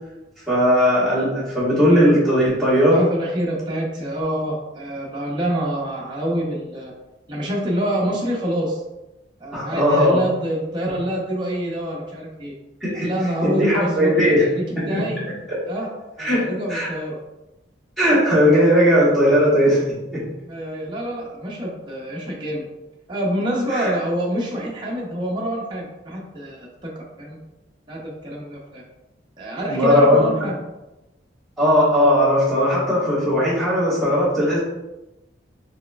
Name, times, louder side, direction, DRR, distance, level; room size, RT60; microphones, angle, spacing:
voice 1, 0.5-3.0 9.5-10.2 12.8-13.1 13.4-14.4 14.7-15.0 15.5-15.6 16.2-16.9 18.0-19.8 20.1-20.2 23.7-23.9 29.7-30.5 31.6-34.6, equal, ahead, -9 dB, 1.3 m, -18 dB
voice 2, 2.9-6.9 7.3-8.8 9.4-12.5 12.9-15.2 15.6-15.9 16.2-17.2 20.5-22.7 23.1-27.4 27.9-28.8 29.4-30.6, right 1 dB, 25° right, -4 dB, 0.5 m, -26 dB
4.0 x 3.2 x 2.3 m, 0.99 s
head